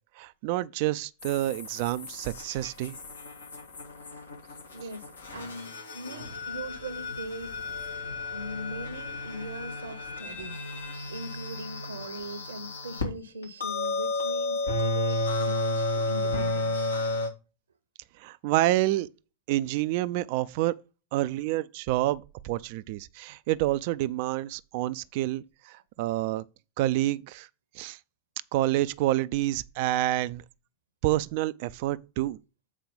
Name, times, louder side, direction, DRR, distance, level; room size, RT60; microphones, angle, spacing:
voice 1, 0.2-3.0 18.2-19.1 19.5-20.7 21.1-26.4 26.8-27.5 27.7-28.0 28.5-30.4 31.0-32.4, right 15 dB, 50° right, 0.4 m, -28 dB
sound 1, 1.2-13.0 13.4-17.3, left 2 dB, 75° left, 2.4 m, -33 dB
voice 2, 3.9-4.3 4.7-7.5 8.3-16.9, right 1 dB, 70° right, 0.9 m, -40 dB
7.5 x 4.6 x 5.0 m
figure-of-eight pair, 90°, 0 cm